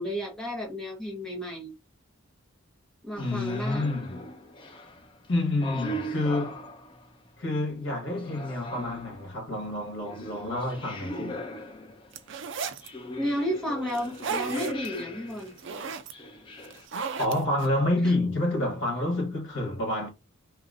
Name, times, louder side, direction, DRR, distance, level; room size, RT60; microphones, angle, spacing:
voice 1, 0.0-1.7 3.0-3.9 13.2-15.5 18.0-18.1, equal, 5° left, 1.2 m, -32 dB
voice 2, 3.2-4.2 5.3-6.6 7.4-11.4 17.2-20.1, left 1 dB, 55° left, 1.3 m, -28 dB
sound 1, 3.2-7.3 8.1-12.2 12.8-15.6 16.1-16.9, equal, 25° left, 0.5 m, -39 dB
sound 2, 12.1-12.9 13.9-14.9 15.3-16.1 16.6-17.7, right 5 dB, 60° right, 0.5 m, -34 dB
3.0 x 2.7 x 2.6 m
head